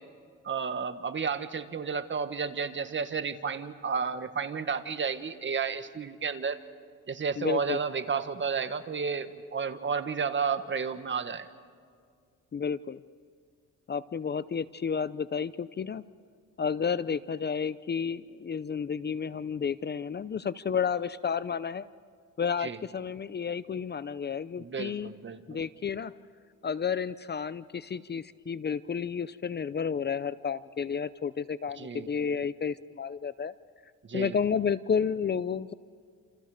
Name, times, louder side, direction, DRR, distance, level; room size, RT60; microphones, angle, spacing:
voice 1, 0.4-6.6 7.1-11.5 22.6-22.8 24.6-25.6 31.8-32.1 34.0-34.4, right 5 dB, 40° right, 9 dB, 1.7 m, -32 dB
voice 2, 7.4-7.8 12.5-13.0 13.9-16.0 16.6-21.9 22.4-25.1 25.5-26.1 26.6-33.5 34.1-35.7, left 6 dB, 35° left, 16 dB, 0.7 m, -31 dB
29.0 x 28.5 x 5.1 m, 2.1 s
cardioid pair, 90°, 30 cm